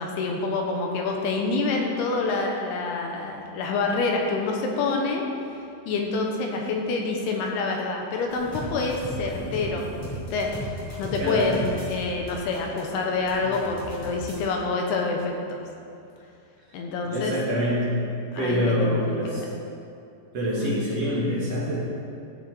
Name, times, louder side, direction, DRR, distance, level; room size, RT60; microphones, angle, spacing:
voice 1, 0.0-5.2 5.9-10.5 11.0-15.6 16.7-17.3 18.3-19.5 20.6-20.9, left 3 dB, 75° left, 1 dB, 2.7 m, -27 dB
sound 1, 8.3-14.5, equal, 40° left, 0.6 m, -36 dB
voice 2, 17.0-18.0 18.4-19.4 20.3-21.8, equal, 60° right, -6 dB, 1.6 m, -25 dB
15.0 x 6.8 x 4.5 m, 2.5 s
omnidirectional pair, 5.3 m